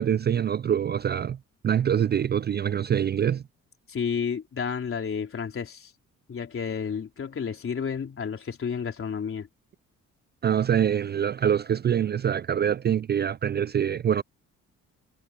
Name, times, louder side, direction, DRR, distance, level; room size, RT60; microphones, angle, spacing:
voice 1, 0.0-1.4 1.6-3.4 10.4-14.2, right 9 dB, 35° right, 0.4 m, -24 dB
voice 2, 3.9-5.9 6.3-9.5, left 6 dB, 45° left, 4.0 m, -31 dB
cardioid pair, 90°, 30 cm